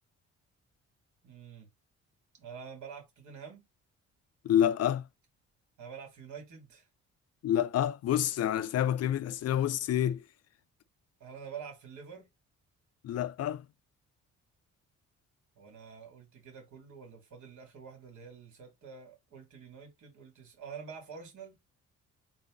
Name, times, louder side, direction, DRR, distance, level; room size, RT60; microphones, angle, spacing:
voice 1, 1.2-1.7 2.4-3.6 5.8-6.9 11.2-12.3 15.6-21.5, right 6 dB, 75° right, 2.7 m, -47 dB
voice 2, 4.4-5.0 7.4-10.2 13.0-13.6, left 10 dB, 55° left, 0.5 m, -28 dB
3.9 x 2.8 x 3.8 m
cardioid pair, 90°, 30 cm